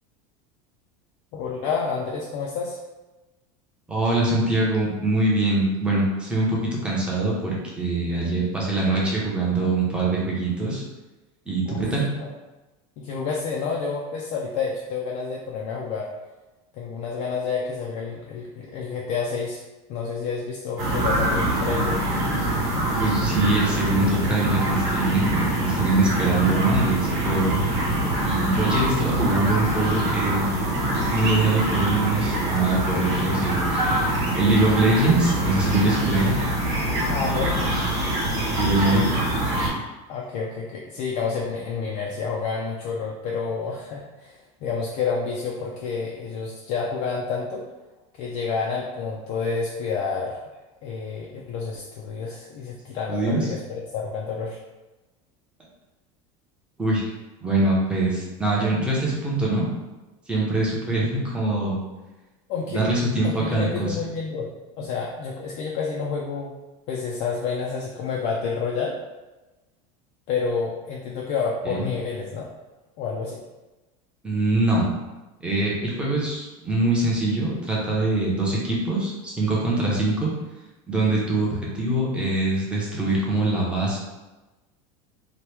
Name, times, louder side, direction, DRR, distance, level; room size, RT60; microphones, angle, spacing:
voice 1, 1.3-2.8 11.7-11.9 12.2-12.3 13.0-16.1 16.7-19.6 19.9-22.1 37.1-37.6 38.5-38.6 40.1-47.6 48.1-50.4 50.8-54.6 62.5-62.8 63.2-64.5 64.8-66.5 66.9-69.0 70.3-72.5 73.0-73.4, left 5 dB, 45° left, -2 dB, 0.4 m, -29 dB
voice 2, 3.9-10.8 11.5-12.1 22.9-27.6 28.2-30.5 31.1-36.6 38.6-39.1 53.1-53.4 56.8-57.1 57.4-59.7 60.3-61.8 62.7-64.0 71.6-71.9 74.2-74.9 75.4-80.3 80.9-84.0, right 2 dB, 5° right, -5 dB, 0.6 m, -23 dB
sound 1, 20.8-39.7, right 1 dB, 35° right, 1.1 m, -24 dB
3.0 x 2.1 x 3.3 m, 1.1 s
supercardioid pair, 155°, 17 cm